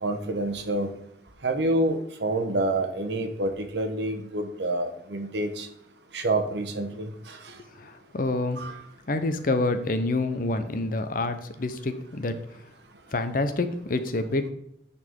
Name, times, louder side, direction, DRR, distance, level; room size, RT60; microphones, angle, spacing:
voice 1, 0.0-0.9 1.4-5.7 6.1-7.4 8.6-8.8, right 1 dB, 75° right, 6 dB, 1.0 m, -28 dB
voice 2, 7.7-8.6 9.1-12.4 13.1-14.5, left 2 dB, 50° left, 9 dB, 0.6 m, -27 dB
9.0 x 4.1 x 3.6 m, 0.76 s
head